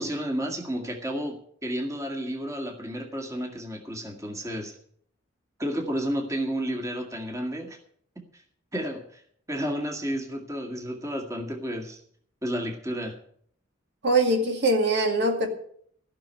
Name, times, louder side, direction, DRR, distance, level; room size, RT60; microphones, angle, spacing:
voice 1, 0.0-1.4 1.6-4.7 5.6-7.8 8.3-8.4 8.7-9.2 9.5-12.0 12.4-13.2, equal, 15° right, 2 dB, 2.0 m, -31 dB
voice 2, 14.0-15.5, right 2 dB, 60° right, 4 dB, 2.2 m, -22 dB
16.0 x 5.9 x 9.1 m, 0.63 s
head